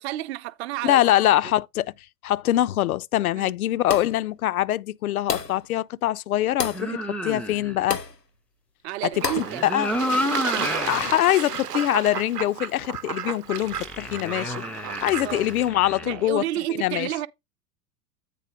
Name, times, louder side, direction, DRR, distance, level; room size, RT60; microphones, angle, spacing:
voice 1, 0.0-1.0 3.4-3.5 8.8-9.6 15.2-15.5 16.0-17.3, right 15 dB, 45° right, 0.7 m, -30 dB
voice 2, 0.8-1.9 2.2-7.0 7.2-8.0 9.0-9.1 9.4-9.9 10.6-17.1, left 13 dB, 65° left, 0.5 m, -24 dB
sound 1, 3.9-4.3 5.3-5.6 6.6-6.9 7.9-8.2 9.2-9.6, left 5 dB, 85° left, 1.0 m, -30 dB
sound 2, 6.7-7.9 9.3-11.1 11.6-11.7 13.6-16.2, left 1 dB, 5° left, 0.5 m, -30 dB
Fowl / Bird / Water, 9.1-15.7, right 9 dB, 75° right, 0.8 m, -33 dB
8.4 x 3.9 x 5.1 m
figure-of-eight pair, 85°, 47 cm